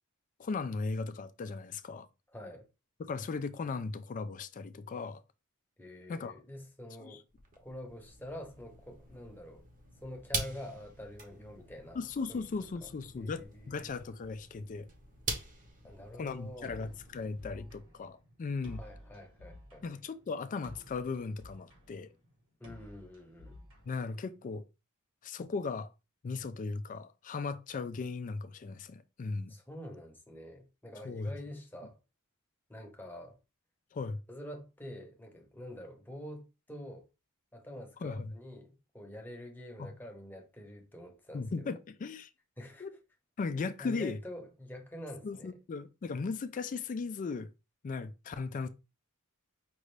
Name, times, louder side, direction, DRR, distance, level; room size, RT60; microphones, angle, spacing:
voice 1, 0.4-2.1 3.0-5.2 6.1-6.3 7.0-7.2 12.0-14.9 16.1-18.8 19.8-22.1 23.9-24.6 25.2-25.9 26.2-29.5 31.0-31.3 33.9-34.2 38.0-38.3 39.8-39.9 41.3-42.3 42.8-42.9 43.4-44.2 45.2-47.5 47.8-48.7, left 4 dB, 35° left, 0.3 m, -37 dB
voice 2, 2.3-2.7 5.8-7.2 7.6-9.6 10.0-12.0 12.3-12.5 12.8-12.9 13.2-13.9 15.8-16.7 18.7-19.8 22.6-23.6 29.5-32.0 32.7-33.4 34.3-37.1 37.5-41.8 42.6-42.9 43.8-45.5, left 1 dB, 10° left, 0.9 m, -46 dB
sound 1, 7.3-17.8, right 3 dB, 40° right, 1.0 m, -44 dB
sound 2, 16.6-24.6, left 1 dB, 60° right, 1.7 m, -53 dB
5.3 x 2.5 x 3.2 m
head